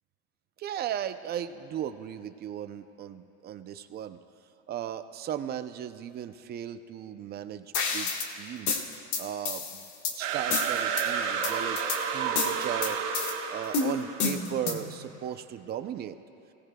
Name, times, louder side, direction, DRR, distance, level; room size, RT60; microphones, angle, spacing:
voice 1, 0.6-4.2 4.7-13.0 13.5-16.2, right 10 dB, 25° right, 10 dB, 0.5 m, -37 dB
sound 1, 7.7-8.3 8.7-10.2 10.5-11.0 11.4-12.0 12.4-13.3 13.7-14.9, left 5 dB, 50° left, 1.5 m, -30 dB
sound 2, 10.2-14.6, right 6 dB, 80° right, 1.6 m, -31 dB
26.5 x 17.5 x 2.2 m, 2.9 s
supercardioid pair, 135°, 37 cm